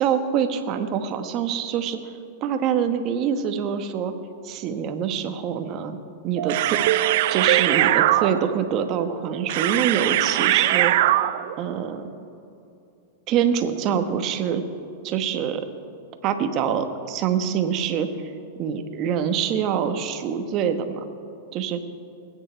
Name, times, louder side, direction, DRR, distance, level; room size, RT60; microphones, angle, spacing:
voice 1, 0.0-2.1 2.4-4.1 4.4-6.0 6.2-6.8 7.3-11.1 11.6-12.1 13.3-14.6 15.0-15.6 16.2-18.1 18.6-21.0 21.5-21.8, right 8 dB, 40° right, 8 dB, 1.1 m, -25 dB
sound 1, 6.4-11.6, right 14 dB, 60° right, 0.4 m, -21 dB
21.0 x 9.2 x 4.5 m, 2.6 s
hypercardioid pair, 125°, 0 cm